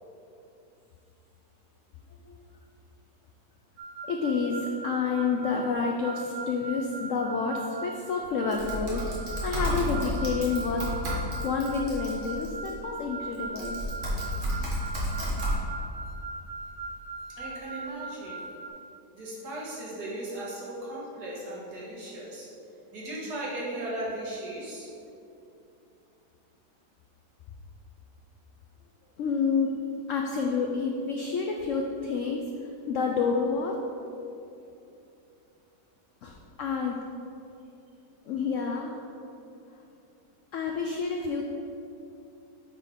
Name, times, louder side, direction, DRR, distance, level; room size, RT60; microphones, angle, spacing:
sound 1, 3.8-18.7, right 3 dB, 80° right, 1.2 m, -40 dB
voice 1, 4.1-9.1 9.4-10.8 11.4-13.8 29.2-29.7 30.1-32.4 32.9-33.7 36.2-37.0 38.3-39.0 40.5-41.4, left 5 dB, 80° left, 1 dB, 0.7 m, -29 dB
Typing, 8.5-12.7 13.3-15.6, equal, 45° right, 1.7 m, -32 dB
voice 2, 17.4-18.4 19.1-22.5 22.9-24.9, right 1 dB, 65° right, -5 dB, 2.0 m, -37 dB
9.4 x 4.2 x 3.6 m, 2.7 s
omnidirectional pair, 1.9 m